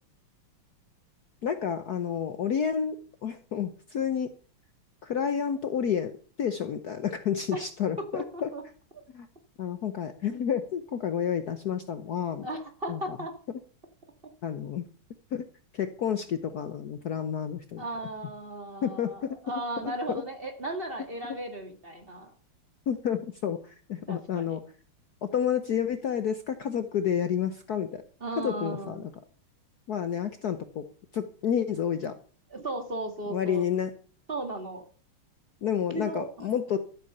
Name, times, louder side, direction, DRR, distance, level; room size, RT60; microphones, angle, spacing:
voice 1, 1.4-4.3 5.0-6.1 6.4-8.5 9.1-9.3 9.6-12.5 12.9-13.0 14.4-14.8 15.3-15.4 15.7-17.8 18.8-19.1 20.1-20.2 22.9-24.6 25.3-28.0 28.4-29.0 29.9-30.9 31.1-32.1 33.3-33.9 35.6-36.8, left 8 dB, 60° left, 9 dB, 1.2 m, -30 dB
voice 2, 8.0-8.6 8.9-9.0 12.4-13.3 17.8-22.3 24.1-24.6 28.2-29.1 32.5-33.6 34.3-34.8 35.9-36.5, right 1 dB, 25° right, 6 dB, 1.9 m, -36 dB
13.5 x 8.3 x 6.7 m, 0.41 s
omnidirectional pair, 2.4 m